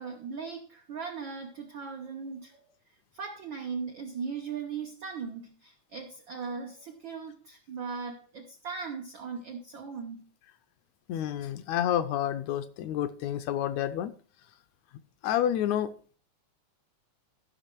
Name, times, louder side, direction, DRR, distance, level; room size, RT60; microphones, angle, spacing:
voice 1, 0.0-2.6 3.1-10.3, right 5 dB, 80° right, 4 dB, 1.0 m, -38 dB
voice 2, 11.1-14.1 15.2-15.9, left 11 dB, 80° left, 11 dB, 1.7 m, -29 dB
14.0 x 6.0 x 4.4 m, 0.41 s
omnidirectional pair, 3.5 m